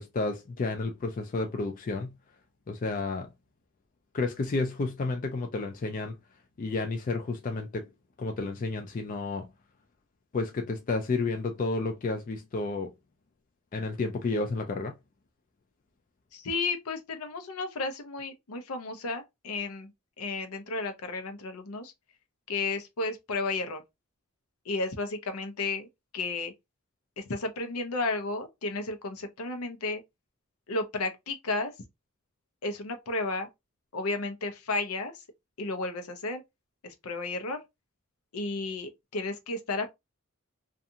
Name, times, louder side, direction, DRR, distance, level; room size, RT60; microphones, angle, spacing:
voice 1, 0.0-2.1 2.7-3.3 4.1-6.2 6.6-7.9 8.2-9.5 10.3-12.9 13.7-14.9, left 3 dB, 40° left, 0.3 m, -31 dB
voice 2, 16.3-19.9 20.2-21.9 22.5-23.8 24.7-25.9 26.1-26.5 27.2-30.0 30.7-31.7 32.6-33.5 33.9-35.2 35.6-36.4 36.8-37.6 38.3-39.9, left 3 dB, 90° left, 0.6 m, -33 dB
2.5 x 2.4 x 2.7 m
head